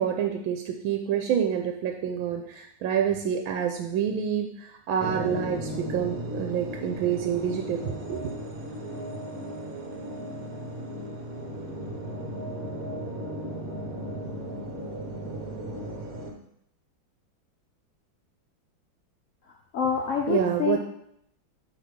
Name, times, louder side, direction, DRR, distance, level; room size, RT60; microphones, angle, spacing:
voice 1, 0.0-8.3 20.3-20.8, right 8 dB, 85° right, 3 dB, 1.4 m, -27 dB
sound 1, 5.0-16.3, right 1 dB, 55° right, 1.2 m, -36 dB
voice 2, 19.7-20.8, left 7 dB, 75° left, 1 dB, 0.7 m, -26 dB
7.9 x 3.3 x 5.1 m, 0.74 s
omnidirectional pair, 2.1 m